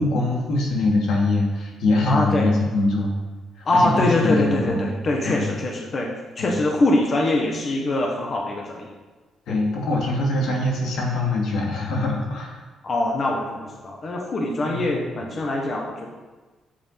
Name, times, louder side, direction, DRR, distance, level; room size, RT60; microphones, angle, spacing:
voice 1, 0.0-3.1 3.6-4.9 5.2-5.5 6.4-6.6 9.5-12.6 14.6-14.9, left 2 dB, 85° left, -2 dB, 2.5 m, -23 dB
voice 2, 2.1-2.5 3.6-8.9 9.5-9.6 12.8-16.1, left 2 dB, 35° left, 0 dB, 1.3 m, -23 dB
9.2 x 7.6 x 5.8 m, 1.3 s
cardioid pair, 155°, 0 cm